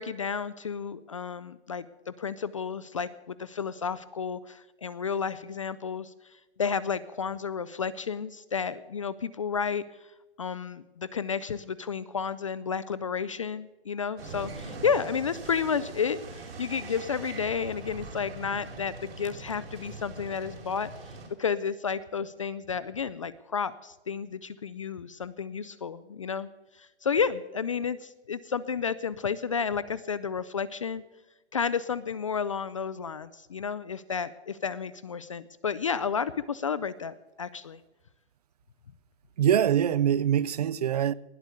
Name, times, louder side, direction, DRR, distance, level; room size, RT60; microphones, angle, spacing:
voice 1, 0.0-6.1 6.6-9.8 10.4-20.9 21.4-26.5 26.8-31.0 31.5-37.8, left 6 dB, 30° left, 0.4 m, -31 dB
sound 1, 14.2-21.3, right 3 dB, 70° right, 4.7 m, -42 dB
voice 2, 39.4-41.1, right 10 dB, 40° right, 0.4 m, -24 dB
19.5 x 8.1 x 6.5 m
hypercardioid pair, 165°, 33 cm